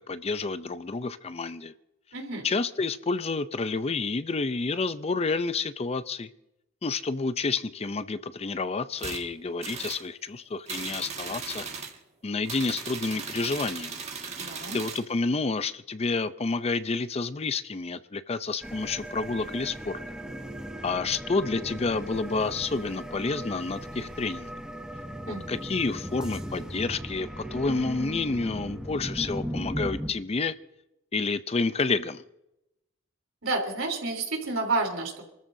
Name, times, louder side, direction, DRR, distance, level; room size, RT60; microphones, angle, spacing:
voice 1, 0.0-1.7 2.4-6.3 6.8-11.6 12.2-14.0 14.7-20.0 20.8-24.5 25.3-30.5 31.1-32.2, left 3 dB, 30° left, 0.5 m, -29 dB
voice 2, 2.1-2.5 14.4-14.8 25.3-25.5 33.4-35.3, right 3 dB, 80° right, 3.6 m, -30 dB
sound 1, 9.0-9.2 9.6-10.0 10.7-12.0 12.4-15.1, right 5 dB, 35° right, 1.8 m, -37 dB
sound 2, 18.6-30.1, equal, 5° right, 1.0 m, -37 dB
28.0 x 14.0 x 2.7 m
head